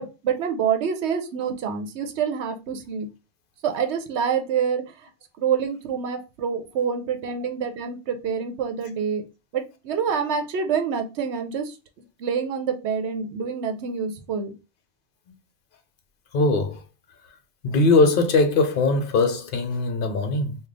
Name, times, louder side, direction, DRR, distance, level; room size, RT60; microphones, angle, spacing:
voice 1, 0.0-3.1 3.6-4.8 5.4-9.2 9.5-14.5, right 7 dB, 80° right, 0.9 m, -27 dB
voice 2, 16.3-16.8 17.6-20.6, left 3 dB, 55° left, 0.8 m, -20 dB
3.3 x 2.3 x 3.7 m
omnidirectional pair, 1.2 m